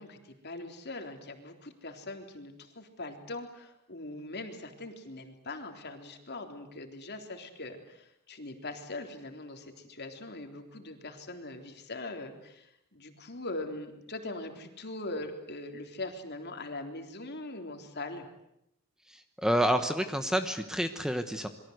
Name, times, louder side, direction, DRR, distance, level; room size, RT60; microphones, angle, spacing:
voice 1, 0.0-18.3, left 2 dB, 50° left, 5 dB, 3.6 m, -41 dB
voice 2, 19.1-21.5, equal, 5° right, 8 dB, 1.1 m, -29 dB
27.5 x 23.0 x 8.1 m, 0.80 s
head